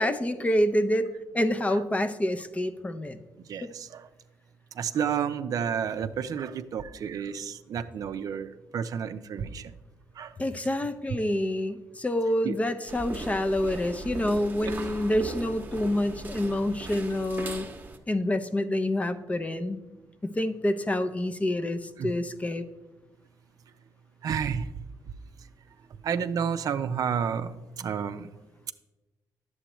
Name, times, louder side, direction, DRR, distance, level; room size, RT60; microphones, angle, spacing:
voice 1, 0.0-3.2 3.6-3.7 10.4-17.7 18.1-19.8 20.2-22.6, left 1 dB, 20° left, 9 dB, 0.5 m, -27 dB
voice 2, 3.5-4.0 4.8-9.7 10.2-10.3 12.4-12.6 14.6-14.7 22.0-22.1 24.2-24.7 26.0-28.3, right 7 dB, 60° right, 10 dB, 0.4 m, -31 dB
sound 1, 12.9-18.0, right 3 dB, 25° right, 0.9 m, -38 dB
9.8 x 7.7 x 3.0 m, 1.2 s
cardioid pair, 80°, 7 cm